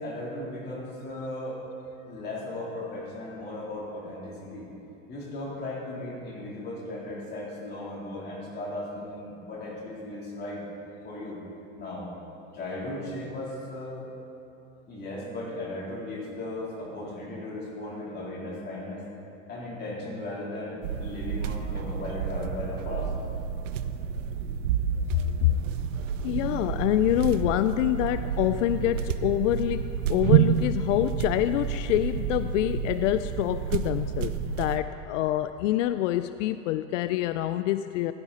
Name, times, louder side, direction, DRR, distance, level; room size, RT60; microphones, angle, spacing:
voice 1, 0.0-1.6 2.1-4.7 5.1-10.6 11.0-11.4 11.7-12.1 12.5-14.1 14.9-19.0 19.5-23.1, left 1 dB, 25° left, -5 dB, 3.6 m, -36 dB
sound 1, 20.8-34.8, right 8 dB, 85° right, 0.7 m, -29 dB
voice 2, 26.2-38.1, left 14 dB, 80° left, 12 dB, 0.5 m, -26 dB
16.5 x 11.5 x 4.2 m, 2.8 s
supercardioid pair, 140°, 37 cm